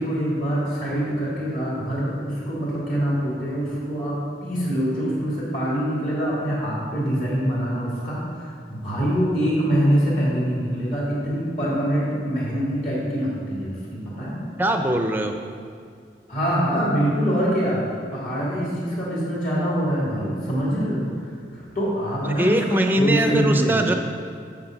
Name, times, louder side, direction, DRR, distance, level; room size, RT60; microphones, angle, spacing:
voice 1, 0.0-14.4 16.3-17.8 18.1-21.1 21.5-23.9, equal, 50° left, -7 dB, 2.8 m, -24 dB
voice 2, 14.6-15.3 22.4-23.9, right 1 dB, 10° right, 4 dB, 0.6 m, -21 dB
8.1 x 7.2 x 6.0 m, 2.3 s
head